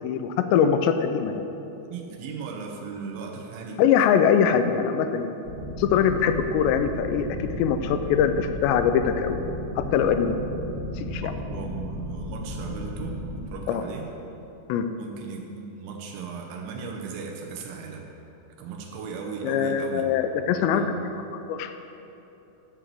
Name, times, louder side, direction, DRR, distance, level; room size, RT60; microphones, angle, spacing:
voice 1, 0.0-1.5 3.8-5.3 5.8-9.4 9.8-10.3 11.0-11.3 13.7-13.8 14.7-14.9 19.4-21.7, left 7 dB, 80° left, 8 dB, 2.7 m, -23 dB
voice 2, 1.9-3.8 11.2-14.1 15.0-18.1 18.6-20.1 20.7-20.9, right 5 dB, 90° right, 0 dB, 3.4 m, -37 dB
sound 1, 5.4-13.5, left 1 dB, 55° right, 1.5 m, -34 dB
14.0 x 5.0 x 7.5 m, 3.0 s
omnidirectional pair, 5.2 m